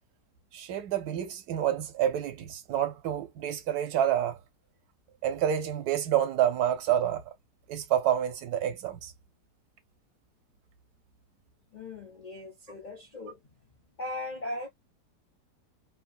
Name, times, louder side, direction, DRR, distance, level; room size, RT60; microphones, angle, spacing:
voice 1, 0.5-4.4 5.2-7.2 7.7-9.1, right 10 dB, 70° right, 1.1 m, -28 dB
voice 2, 11.7-13.6 14.0-14.7, left 2 dB, 55° left, 0.5 m, -38 dB
3.0 x 2.0 x 2.4 m
omnidirectional pair, 1.8 m